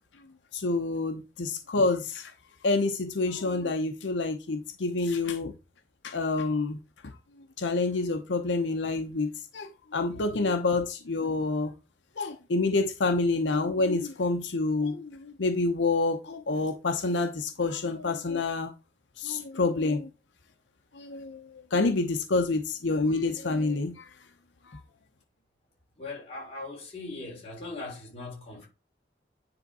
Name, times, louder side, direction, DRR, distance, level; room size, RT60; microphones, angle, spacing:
voice 1, 0.5-2.3 2.6-5.5 6.0-6.8 7.0-7.2 7.6-11.7 12.2-18.7 19.2-20.1 20.9-21.4 21.7-24.1 24.7-24.8, left 3 dB, 80° left, 0.7 m, -28 dB
voice 2, 10.1-10.4 26.0-28.7, left 2 dB, 30° left, 3.1 m, -40 dB
9.7 x 3.5 x 4.1 m
head